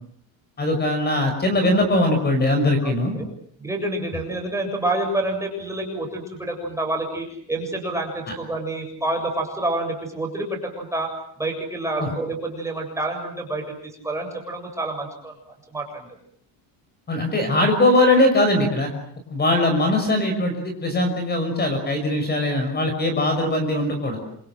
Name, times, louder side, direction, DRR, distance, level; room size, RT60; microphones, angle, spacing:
voice 1, 0.6-3.1 8.3-8.4 12.0-12.1 17.1-18.9 19.3-24.2, left 1 dB, 25° left, 6 dB, 6.1 m, -21 dB
voice 2, 2.8-3.3 3.6-15.3 15.7-16.2, right 2 dB, 5° right, 2 dB, 7.2 m, -28 dB
27.5 x 27.0 x 7.7 m, 0.63 s
cardioid pair, 155°, 42 cm